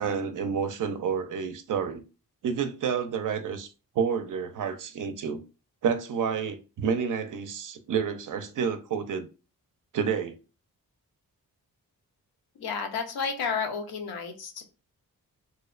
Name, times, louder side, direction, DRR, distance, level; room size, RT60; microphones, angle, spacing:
voice 1, 0.0-2.0 2.4-3.7 4.0-5.4 5.8-9.3 9.9-10.4, right 6 dB, 60° right, 0.5 m, -29 dB
voice 2, 12.6-14.6, left 5 dB, 90° left, 0.6 m, -31 dB
2.7 x 2.0 x 2.3 m
cardioid pair, 80°, 37 cm